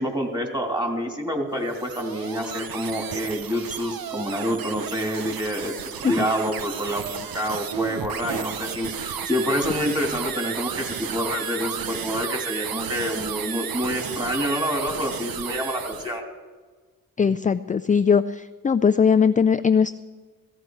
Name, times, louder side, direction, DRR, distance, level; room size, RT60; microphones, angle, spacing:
voice 1, 0.0-16.2, equal, 15° right, 2 dB, 2.9 m, -27 dB
sound 1, 1.5-16.2, right 7 dB, 85° right, 0.7 m, -33 dB
voice 2, 17.2-19.9, left 6 dB, 25° left, 12 dB, 0.3 m, -20 dB
16.5 x 15.0 x 4.7 m, 1.4 s
cardioid pair, 60°, 34 cm